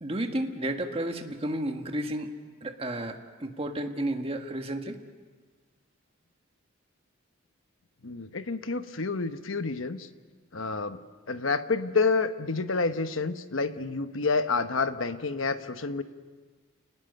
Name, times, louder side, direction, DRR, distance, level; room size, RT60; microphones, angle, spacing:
voice 1, 0.0-2.3 2.6-5.0, right 1 dB, 30° right, 4 dB, 1.6 m, -32 dB
voice 2, 8.0-10.1 10.5-11.0 11.3-16.0, left 4 dB, 65° left, 10 dB, 1.1 m, -29 dB
29.5 x 19.5 x 6.8 m, 1.4 s
head